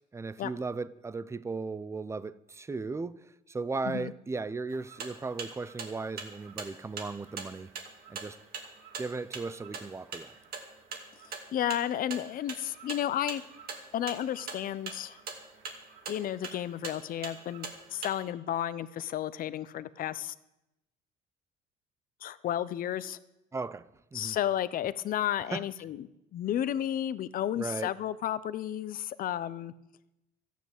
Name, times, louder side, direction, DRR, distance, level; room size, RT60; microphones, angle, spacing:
voice 1, 0.0-7.7 8.1-8.4 9.0-10.4 23.5-24.4 25.5-25.6 27.6-27.9, right 3 dB, 15° right, 0.5 m, -36 dB
sound 1, 4.7-18.2, right 5 dB, 65° right, 2.5 m, -42 dB
voice 2, 11.5-13.4 13.9-15.2 16.1-20.3 22.2-23.2 24.1-29.7, left 11 dB, 55° left, 0.8 m, -32 dB
13.5 x 9.3 x 8.1 m
cardioid pair, 110°, 17 cm